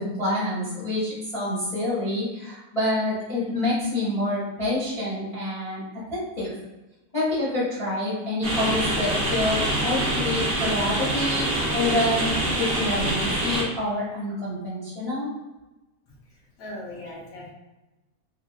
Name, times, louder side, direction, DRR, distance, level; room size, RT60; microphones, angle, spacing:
voice 1, 0.0-5.8 6.1-6.5 7.1-15.3, left 1 dB, 25° left, -11 dB, 0.8 m, -27 dB
sound 1, 8.4-13.6, right 1 dB, 50° right, 0.8 m, -25 dB
voice 2, 16.1-17.5, left 1 dB, 70° left, -3 dB, 1.2 m, -40 dB
3.7 x 2.3 x 2.3 m, 1.1 s
omnidirectional pair, 1.6 m